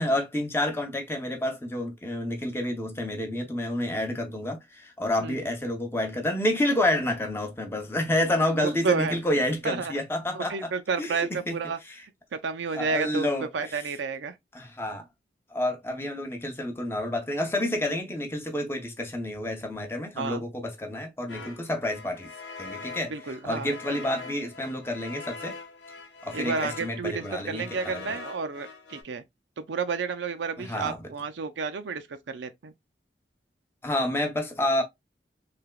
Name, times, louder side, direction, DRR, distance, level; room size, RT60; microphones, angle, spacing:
voice 1, 0.0-10.7 11.0-11.6 11.8-12.0 12.7-13.8 14.5-15.0 15.5-22.3 22.6-25.6 26.2-28.2 30.6-31.0 33.8-34.8, left 1 dB, 15° left, 0.6 m, -29 dB
voice 2, 8.6-9.2 9.6-9.9 10.3-11.8 12.3-13.3 13.5-14.3 20.2-20.4 23.1-24.0 26.3-29.2 29.6-32.7, right 5 dB, 85° right, 0.5 m, -31 dB
sound 1, 21.3-29.0, left 4 dB, 85° left, 0.8 m, -43 dB
3.3 x 2.8 x 2.3 m
head